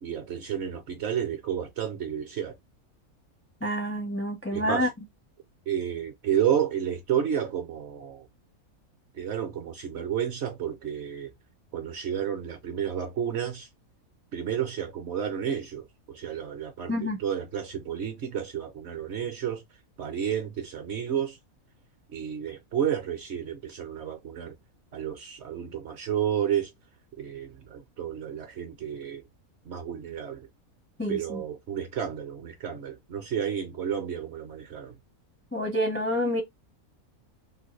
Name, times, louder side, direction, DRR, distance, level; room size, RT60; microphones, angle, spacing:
voice 1, 0.0-2.6 4.5-4.9 5.7-8.3 9.2-11.3 11.7-13.7 14.3-19.6 20.0-21.4 22.1-24.6 24.9-26.7 27.2-29.2 29.7-30.5 31.1-34.9, right 9 dB, 60° right, 0.8 m, -31 dB
voice 2, 3.6-4.9 16.9-17.2 31.0-31.4 35.5-36.4, equal, 15° left, 0.5 m, -28 dB
3.4 x 2.2 x 3.0 m
omnidirectional pair, 1.5 m